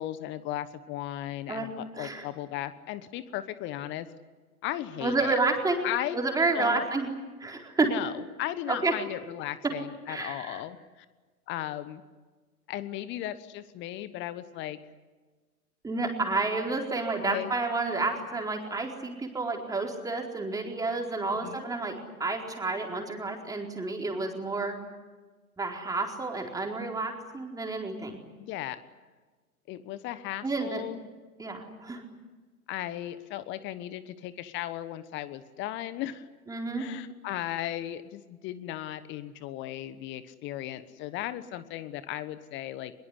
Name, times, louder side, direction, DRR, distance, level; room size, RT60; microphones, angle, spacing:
voice 1, 0.0-4.1 4.6-5.4 5.8-6.2 6.5-6.8 7.8-11.1 11.5-12.0 12.7-14.8 17.2-17.5 21.4-21.6 28.4-28.8 29.7-31.0 32.7-36.3 36.8-42.9, left 13 dB, 25° left, 14 dB, 1.2 m, -36 dB
voice 2, 1.5-2.2 5.0-5.8 6.1-7.1 7.4-7.9 8.7-8.9 9.6-9.7 10.1-10.6 15.8-24.8 25.6-28.2 30.4-30.8 31.4-32.0 36.5-36.8, right 3 dB, 10° right, 2 dB, 4.2 m, -30 dB
23.0 x 22.5 x 9.9 m, 1.3 s
figure-of-eight pair, 110°, 44 cm